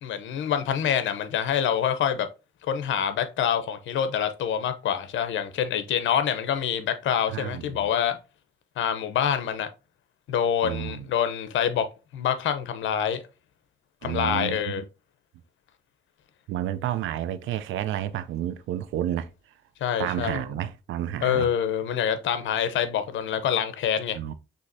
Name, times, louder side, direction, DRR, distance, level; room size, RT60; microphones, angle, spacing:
voice 1, 0.0-2.3 2.6-8.2 8.8-9.7 10.3-11.9 12.1-13.2 14.0-14.8 19.8-20.4 21.2-24.2, left 8 dB, 75° left, 0.8 m, -26 dB
voice 2, 7.3-7.8 10.6-11.1 14.0-14.8 16.5-19.3 20.0-21.5 24.1-24.3, right 11 dB, 80° right, 0.5 m, -30 dB
6.2 x 2.9 x 2.7 m
cardioid pair, 90°, 20 cm